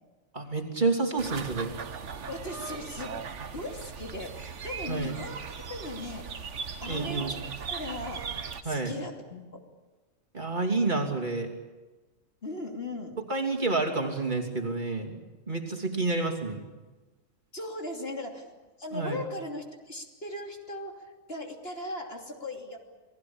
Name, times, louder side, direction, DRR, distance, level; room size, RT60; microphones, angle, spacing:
voice 1, 0.3-1.7 4.9-5.1 6.9-7.3 8.6-8.9 10.3-11.5 13.3-15.2 15.5-16.6 18.9-19.2, right 3 dB, 35° right, 0 dB, 3.1 m, -29 dB
sound 1, 1.2-8.6, right 6 dB, 60° right, 1.5 m, -38 dB
voice 2, 2.3-3.2 3.5-5.3 5.7-7.4 7.7-8.3 8.6-9.6 12.4-13.2 17.5-18.5 18.8-22.8, left 2 dB, 45° left, 2 dB, 3.2 m, -38 dB
29.0 x 19.5 x 8.8 m, 1.2 s
omnidirectional pair, 1.4 m